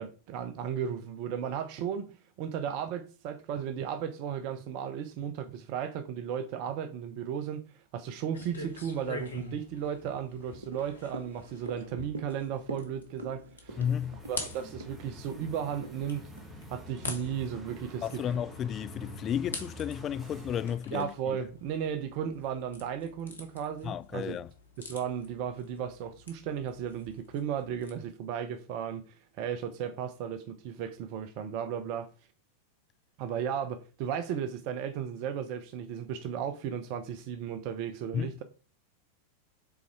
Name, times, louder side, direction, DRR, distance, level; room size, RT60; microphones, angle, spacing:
voice 1, 0.0-7.6 7.9-13.8 14.3-16.2 16.7-18.2 20.9-24.4 24.8-32.1 33.2-38.4, right 8 dB, 45° right, 0.6 m, -35 dB
sound 1, 8.3-27.9, left 3 dB, 75° left, 1.5 m, -47 dB
sound 2, 10.6-17.1 17.4-17.5, right 2 dB, 70° right, 1.1 m, -46 dB
sound 3, 13.7-20.8, equal, 15° right, 1.7 m, -47 dB
voice 2, 13.8-14.3 18.0-21.1 23.8-24.5 38.1-38.3, left 9 dB, 30° left, 0.3 m, -33 dB
7.0 x 4.1 x 4.6 m
figure-of-eight pair, 90°, 0 cm